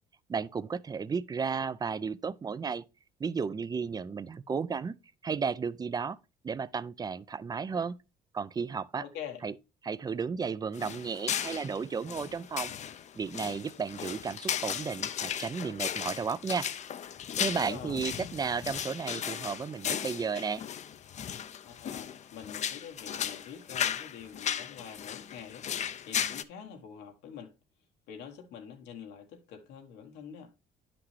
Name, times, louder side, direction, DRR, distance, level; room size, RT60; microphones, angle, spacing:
voice 1, 0.3-2.8 3.2-4.9 5.2-6.2 6.4-8.0 8.3-9.0 9.4-9.5 9.8-12.7 13.2-16.7 17.4-20.6, right 5 dB, 25° right, 0.4 m, -33 dB
voice 2, 9.0-9.4 17.3-18.0 21.6-27.5 28.1-30.5, left 8 dB, 85° left, 1.4 m, -46 dB
sound 1, 10.7-26.4, left 9 dB, 45° left, 0.5 m, -36 dB
9.7 x 5.9 x 3.2 m
cardioid pair, 110°, 17 cm